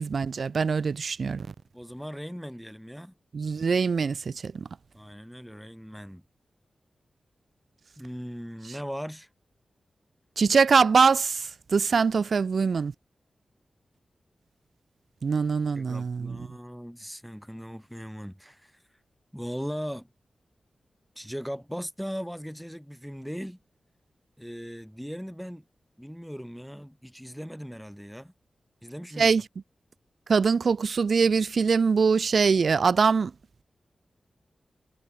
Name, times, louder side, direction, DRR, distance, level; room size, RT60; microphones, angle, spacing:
voice 1, 0.0-1.5 3.3-4.7 10.4-12.9 15.2-16.4 29.2-29.4 30.3-33.3, right 5 dB, 60° right, 0.4 m, -23 dB
voice 2, 1.7-3.1 4.9-6.2 8.0-9.3 11.9-12.0 15.7-18.8 19.3-20.1 21.2-23.6 24.4-25.6 26.0-28.3 28.8-29.3, equal, ahead, 4.5 m, -38 dB
wide cardioid pair, 155°, 0 cm